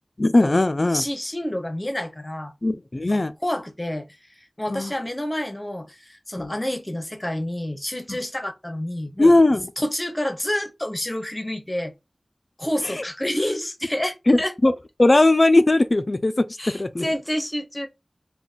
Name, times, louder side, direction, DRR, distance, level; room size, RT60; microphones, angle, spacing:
voice 1, 0.2-1.0 2.6-3.3 4.7-4.9 6.4-6.5 8.1-8.2 9.2-9.7 13.0-13.1 14.3-14.7 15.0-16.5 16.7-17.1, left 2 dB, 55° left, 0.3 m, -18 dB
voice 2, 0.9-2.5 3.4-4.1 4.6-9.3 9.8-11.9 12.6-14.5 16.6-17.9, left 1 dB, 25° left, 0.7 m, -28 dB
2.4 x 2.1 x 3.8 m
wide cardioid pair, 45°, 0 cm